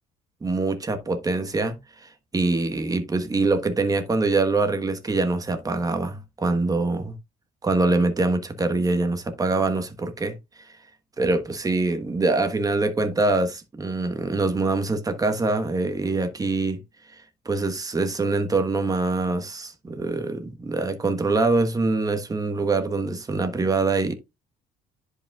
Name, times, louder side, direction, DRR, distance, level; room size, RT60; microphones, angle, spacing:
voice 1, 0.4-7.2 7.6-10.3 10.6-10.8 11.2-16.8 17.4-24.1, right 3 dB, 20° right, 1.2 m, -24 dB
10.5 x 4.9 x 2.4 m
cardioid pair, 110°, 17 cm